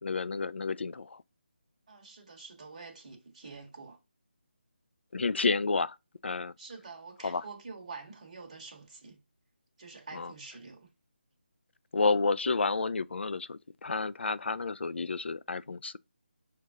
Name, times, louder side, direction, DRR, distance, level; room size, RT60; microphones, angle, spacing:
voice 1, 0.0-1.2 5.1-6.0 6.2-6.5 7.2-7.4 10.1-10.3 11.9-16.0, left 4 dB, 85° left, 0.3 m, -30 dB
voice 2, 1.9-4.0 6.6-9.2 9.8-10.9, right 4 dB, 35° right, 1.3 m, -47 dB
6.4 x 2.4 x 2.6 m
figure-of-eight pair, 175°, 6 cm